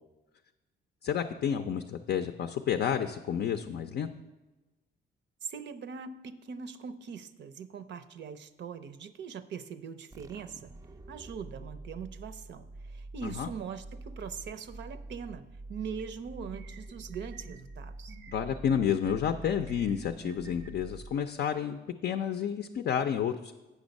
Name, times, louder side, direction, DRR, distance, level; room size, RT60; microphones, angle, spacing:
voice 1, 1.0-4.1 13.2-13.5 18.3-23.5, left 8 dB, 55° left, 7 dB, 0.5 m, -30 dB
voice 2, 5.4-10.7 11.1-18.2, right 6 dB, 65° right, 12 dB, 0.6 m, -42 dB
sound 1, 10.1-21.6, right 2 dB, 15° right, 0.4 m, -46 dB
sound 2, 16.0-16.1 16.5-17.6 18.1-19.1 19.6-20.7, right 6 dB, 90° right, 0.9 m, -50 dB
8.2 x 6.2 x 5.2 m, 1.1 s
cardioid pair, 90°, 20 cm